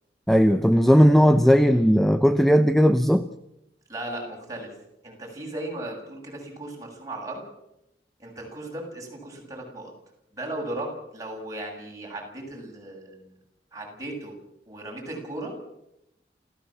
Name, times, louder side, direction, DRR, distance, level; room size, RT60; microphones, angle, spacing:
voice 1, 0.3-3.3, equal, ahead, 10 dB, 0.8 m, -17 dB
voice 2, 3.9-4.7 5.0-7.4 8.2-9.9 10.3-13.3 13.7-14.4 14.7-15.5, right 1 dB, 20° right, -1 dB, 7.8 m, -36 dB
28.5 x 16.0 x 7.5 m, 0.84 s
head